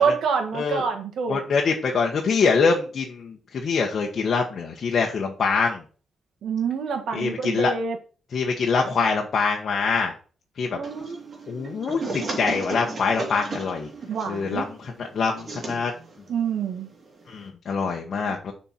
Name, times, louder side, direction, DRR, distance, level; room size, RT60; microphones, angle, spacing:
voice 1, 0.0-1.4 6.4-8.0 10.7-11.2 14.1-14.7 16.3-16.9 17.9-18.3, right 6 dB, 80° right, 1.6 m, -27 dB
voice 2, 1.3-5.8 7.1-7.7 8.3-10.1 10.6-10.8 11.5-13.9 14.3-14.6 15.1-15.9 17.3-18.5, left 5 dB, 55° left, 1.3 m, -24 dB
sound 1, 10.8-17.5, right 3 dB, 45° right, 2.7 m, -35 dB
7.1 x 4.5 x 5.7 m
cardioid pair, 105°, 0 cm